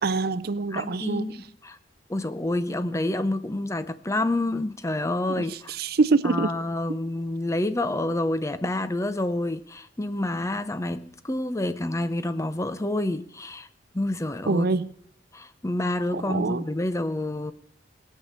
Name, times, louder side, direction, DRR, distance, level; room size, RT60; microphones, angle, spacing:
voice 1, 0.0-1.4 5.3-6.5 14.5-14.9 16.1-16.6, right 3 dB, 55° right, 0.5 m, -25 dB
voice 2, 0.7-1.8 2.1-5.8 6.2-13.7 13.9-14.7 15.3-17.5, left 1 dB, 15° left, 0.6 m, -28 dB
18.5 x 6.6 x 7.2 m
head